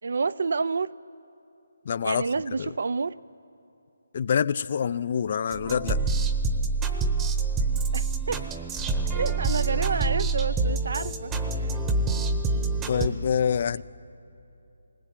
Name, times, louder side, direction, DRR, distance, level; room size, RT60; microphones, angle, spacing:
voice 1, 0.0-0.9 2.0-3.2 7.9-8.4 9.1-11.3, right 4 dB, 60° right, 0.5 m, -29 dB
voice 2, 1.9-2.3 2.6-2.7 4.1-6.0 12.9-13.8, left 7 dB, 40° left, 0.4 m, -26 dB
sound 1, 5.5-13.1, right 3 dB, 10° right, 1.0 m, -26 dB
19.5 x 19.5 x 8.7 m
hypercardioid pair, 165°, 0 cm